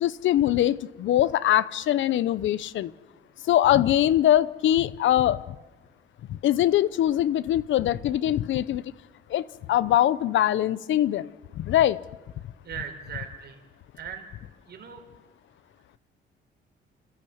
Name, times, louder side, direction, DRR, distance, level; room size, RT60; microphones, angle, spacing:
voice 1, 0.0-2.9 3.5-5.6 6.3-8.8 9.3-9.4 9.7-12.0, left 12 dB, 75° left, 19 dB, 0.7 m, -22 dB
voice 2, 12.6-13.6 14.0-14.3 14.7-15.0, right 7 dB, 55° right, 4 dB, 4.2 m, -38 dB
28.0 x 15.0 x 7.9 m, 1.2 s
cardioid pair, 90°, 20 cm